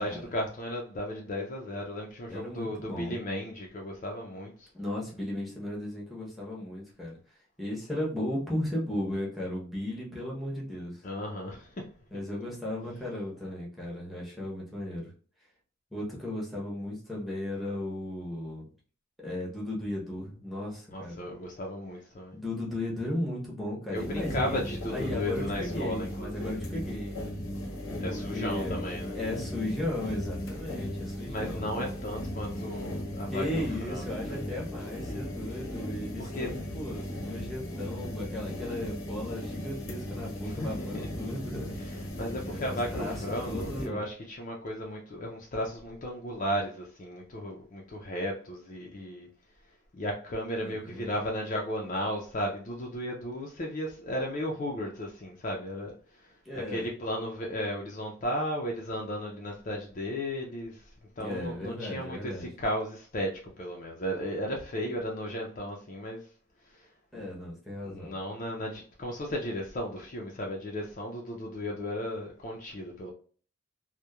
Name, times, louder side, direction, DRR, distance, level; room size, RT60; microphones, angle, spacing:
voice 1, 0.0-4.7 11.0-11.9 20.9-22.4 23.9-26.5 28.0-29.2 31.3-34.4 36.2-36.5 40.4-41.1 41.8-49.3 49.9-66.3 66.7-67.3 67.8-73.1, equal, 35° left, 0.4 m, -35 dB
voice 2, 2.3-3.2 4.7-7.2 7.6-11.0 12.1-15.1 15.9-18.7 19.2-21.2 22.3-24.6 24.9-27.2 28.1-28.8 29.1-31.7 33.3-41.8 42.5-44.0 50.6-51.1 56.4-56.9 61.2-62.5 67.1-68.1, left 1 dB, ahead, 0.7 m, -36 dB
sound 1, 23.9-43.9, equal, 75° left, 0.7 m, -37 dB
2.9 x 2.1 x 2.2 m
head